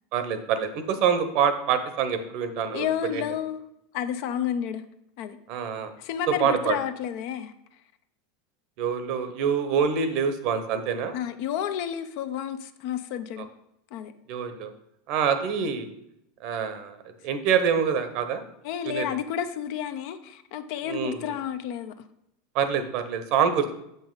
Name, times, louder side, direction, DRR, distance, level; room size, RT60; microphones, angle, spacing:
voice 1, 0.1-2.9 3.1-3.2 5.5-5.9 6.4-6.8 8.8-11.1 14.3-14.7 15.1-15.9 16.4-17.0 17.2-18.4 18.8-19.1 20.9-21.2 22.5-23.7, right 7 dB, 60° right, 10 dB, 0.9 m, -25 dB
voice 2, 2.7-3.7 3.9-4.8 5.2-5.4 6.0-7.5 11.1-13.5 13.9-14.1 18.6-21.9, left 9 dB, 60° left, 10 dB, 0.6 m, -31 dB
6.9 x 5.4 x 3.9 m, 0.80 s
hypercardioid pair, 95°, 0 cm